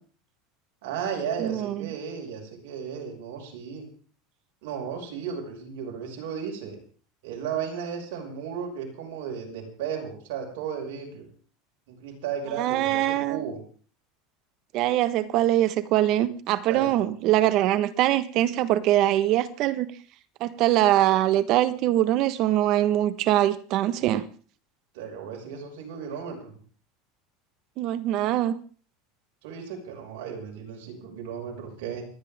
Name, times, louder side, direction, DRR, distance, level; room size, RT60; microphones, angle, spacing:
voice 1, 0.8-3.9 4.6-6.8 7.2-11.3 11.9-13.6 16.7-16.9 24.9-26.6 29.4-32.1, right 7 dB, 75° right, 1 dB, 5.8 m, -34 dB
voice 2, 1.4-1.9 12.6-13.4 14.7-19.9 20.4-24.3 27.8-28.6, right 13 dB, 50° right, 13 dB, 1.3 m, -23 dB
28.5 x 9.9 x 3.6 m, 0.41 s
supercardioid pair, 130°, 0 cm